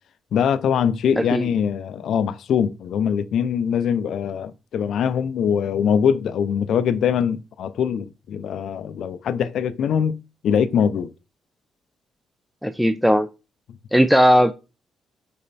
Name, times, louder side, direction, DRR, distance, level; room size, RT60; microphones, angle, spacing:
voice 1, 0.3-10.2 10.4-11.1, left 7 dB, 75° left, 0.5 m, -22 dB
voice 2, 12.6-13.3 13.9-14.5, equal, ahead, 0.5 m, -17 dB
5.4 x 4.3 x 4.1 m
cardioid pair, 75°, 0 cm